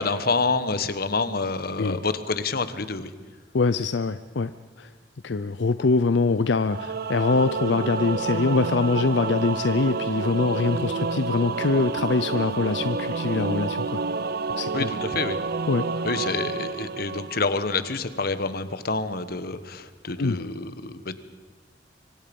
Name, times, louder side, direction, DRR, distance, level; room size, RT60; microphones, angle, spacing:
voice 1, 0.0-3.1 14.7-15.4 16.0-21.1, left 3 dB, 60° left, 12 dB, 1.3 m, -27 dB
voice 2, 3.5-4.5 4.8-4.9 5.2-14.0 14.6-14.9 15.7-16.1 20.2-20.4, left 3 dB, 85° left, 12 dB, 0.6 m, -24 dB
Singing / Musical instrument, 6.7-17.9, right 4 dB, 60° right, 0.7 m, -29 dB
25.0 x 24.5 x 5.4 m, 1.5 s
head